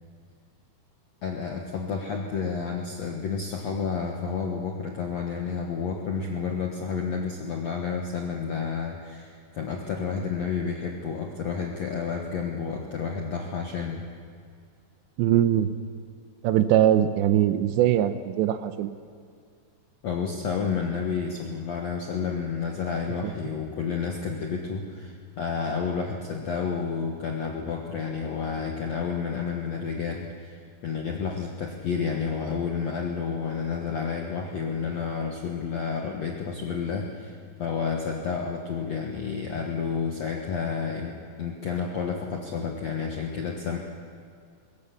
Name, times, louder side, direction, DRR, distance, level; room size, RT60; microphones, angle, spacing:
voice 1, 1.2-14.0 20.0-43.8, left 5 dB, 70° left, 1 dB, 1.6 m, -30 dB
voice 2, 15.2-15.7 16.4-18.9, right 11 dB, 80° right, 11 dB, 2.9 m, -21 dB
22.0 x 18.5 x 7.1 m, 2.2 s
omnidirectional pair, 5.2 m